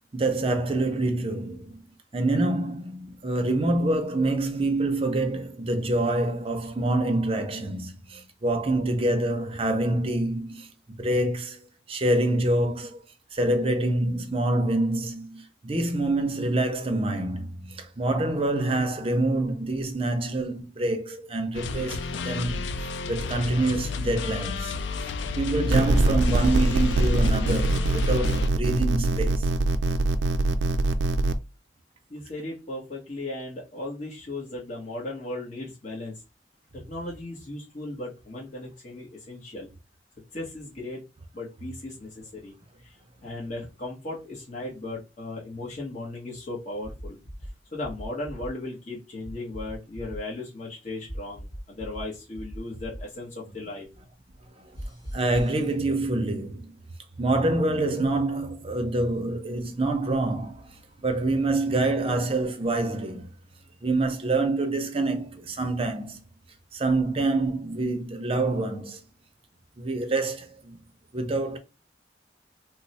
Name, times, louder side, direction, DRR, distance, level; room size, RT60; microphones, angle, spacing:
voice 1, 0.1-1.8 2.1-11.6 11.9-13.0 13.3-24.7 25.0-29.5 55.1-56.8 57.2-63.3 63.8-66.2 66.7-69.0 69.8-70.8 71.1-71.6, right 2 dB, 30° right, 0.5 m, -26 dB
sound 1, 21.5-28.5, left 3 dB, 75° left, 0.4 m, -30 dB
sound 2, 25.7-31.3, right 2 dB, 80° right, 0.4 m, -23 dB
voice 2, 32.1-36.1 36.7-39.7 40.3-41.0 41.3-42.5 42.8-43.0 43.2-47.2 47.7-53.9, left 2 dB, 40° left, 0.9 m, -36 dB
sound 3, 46.8-47.5 47.8-48.5 49.2-50.2 51.1-52.0 52.3-53.0 54.7-55.5, equal, 20° left, 1.2 m, -39 dB
3.0 x 2.0 x 4.0 m
head